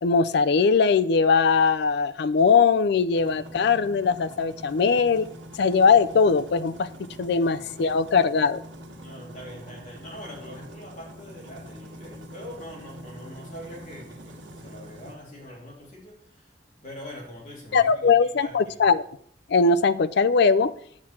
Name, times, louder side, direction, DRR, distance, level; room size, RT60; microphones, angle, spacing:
voice 1, 0.0-5.3 5.6-6.9 7.2-8.6 17.7-19.0 19.5-20.7, left 5 dB, 65° left, 13 dB, 0.4 m, -20 dB
sound 1, 3.1-15.2, equal, 90° right, 1.4 m, -44 dB
voice 2, 9.0-16.5 16.8-18.8, equal, 45° left, -2 dB, 3.3 m, -43 dB
9.6 x 8.6 x 4.4 m, 0.64 s
head